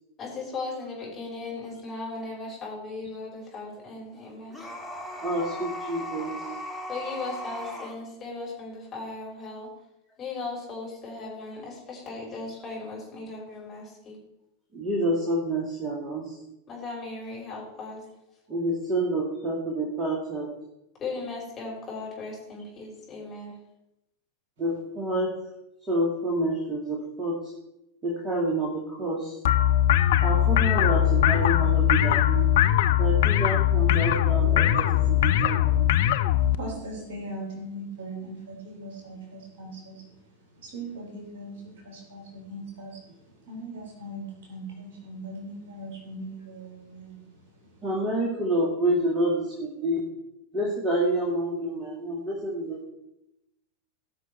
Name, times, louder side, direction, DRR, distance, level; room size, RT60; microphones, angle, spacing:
voice 1, 0.2-4.7 6.9-9.7 10.2-14.2 16.7-18.0 21.0-23.6, left 3 dB, 25° left, 5.0 m, -37 dB
sound 1, 4.5-8.0, left 1 dB, 5° right, 2.0 m, -37 dB
voice 2, 5.2-6.4 14.7-16.3 18.5-20.5 24.6-25.3 25.9-27.5 28.0-29.3 30.2-32.5 33.0-35.9 47.8-50.0 50.5-52.9, right 1 dB, 20° right, 2.5 m, -28 dB
sound 2, 29.4-36.6, left 12 dB, 55° left, 0.6 m, -21 dB
voice 3, 36.4-47.8, right 1 dB, 50° right, 4.1 m, -40 dB
17.0 x 6.2 x 4.6 m
figure-of-eight pair, 90°, 0 cm